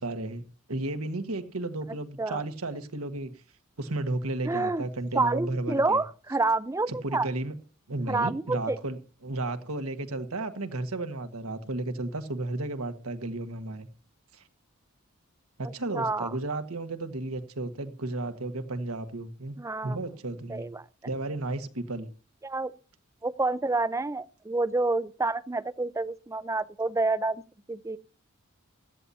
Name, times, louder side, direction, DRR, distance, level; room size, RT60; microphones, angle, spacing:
voice 1, 0.0-0.4 0.7-3.3 3.8-6.0 6.9-7.6 7.9-13.9 14.3-14.4 15.6-19.6 19.8-20.7 21.0-22.1, right 2 dB, 80° right, 1.5 m, -33 dB
voice 2, 4.5-4.9 5.1-7.3 8.1-8.8 15.9-16.3 19.6-20.0 20.5-20.7 22.4-22.7 23.2-27.4 27.7-28.0, right 3 dB, 15° right, 0.5 m, -28 dB
17.0 x 13.0 x 2.8 m
head